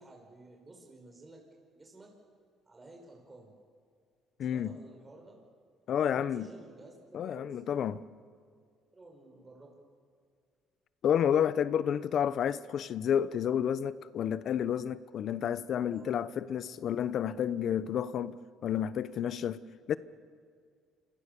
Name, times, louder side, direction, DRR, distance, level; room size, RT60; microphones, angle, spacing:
voice 1, 0.0-1.4 1.7-2.1 2.7-3.5 4.5-5.4 5.9-7.6 8.9-9.8 15.8-16.8, right 2 dB, 20° right, 5.6 m, -53 dB
voice 2, 4.4-4.8 5.9-6.5 7.1-8.0 11.0-19.6 19.9-20.0, left 9 dB, 60° left, 0.9 m, -30 dB
28.0 x 25.5 x 6.9 m
cardioid pair, 95°, 0 cm